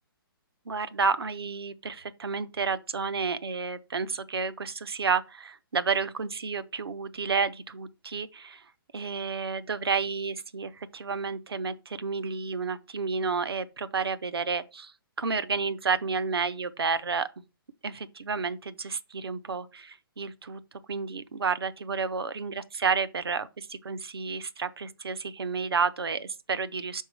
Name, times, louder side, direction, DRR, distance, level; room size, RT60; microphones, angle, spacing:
voice 1, 0.7-8.6 8.9-17.4 17.8-20.6 20.9-27.0, right 5 dB, 85° right, 0.7 m, -31 dB
6.1 x 3.7 x 6.1 m
hypercardioid pair, 140°, 12 cm